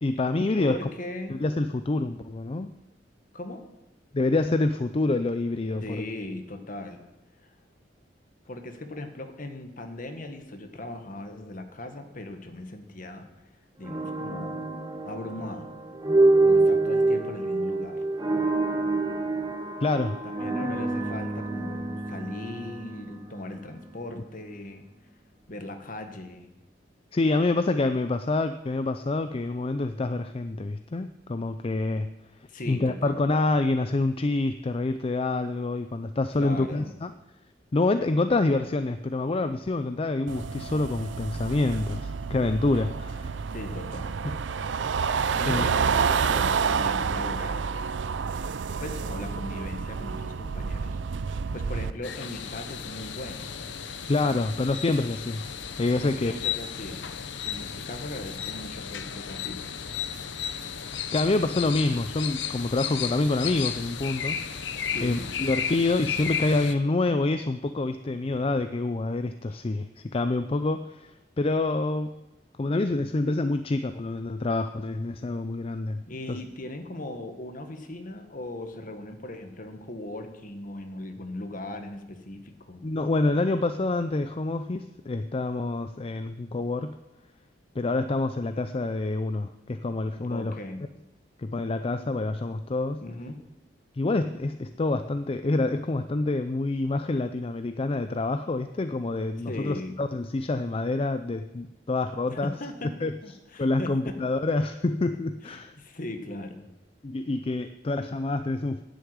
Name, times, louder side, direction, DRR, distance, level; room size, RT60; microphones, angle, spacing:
voice 1, 0.0-0.8 1.3-2.7 4.1-5.8 19.8-20.2 20.6-20.7 27.1-32.1 32.7-37.1 37.7-43.4 44.2-44.3 44.9-45.1 45.4-45.6 54.1-55.5 55.8-56.3 61.1-72.2 72.6-76.4 82.8-87.0 87.7-90.6 91.4-93.0 93.9-102.5 103.0-103.1 103.6-105.7 107.0-108.8, left 2 dB, 30° left, 9 dB, 0.4 m, -27 dB
voice 2, 0.6-1.4 3.3-3.6 5.8-7.0 7.4-7.5 8.5-13.2 13.8-14.7 15.0-15.8 16.4-18.0 20.2-24.9 25.5-26.5 32.5-33.3 36.4-36.9 43.5-44.3 45.3-47.6 48.8-53.5 55.9-57.1 57.4-59.7 64.9-65.3 69.5-69.6 76.1-82.8 90.3-90.8 93.0-93.4 99.5-100.0 102.3-104.1 105.4-106.7, left 1 dB, 50° left, 6 dB, 1.5 m, -39 dB
sound 1, 13.8-23.9, right 2 dB, 20° right, 1.2 m, -26 dB
sound 2, 40.3-51.9, right 5 dB, 85° right, 0.5 m, -29 dB
sound 3, 52.0-66.7, left 7 dB, 80° left, 0.9 m, -34 dB
10.5 x 8.0 x 9.4 m, 0.96 s
head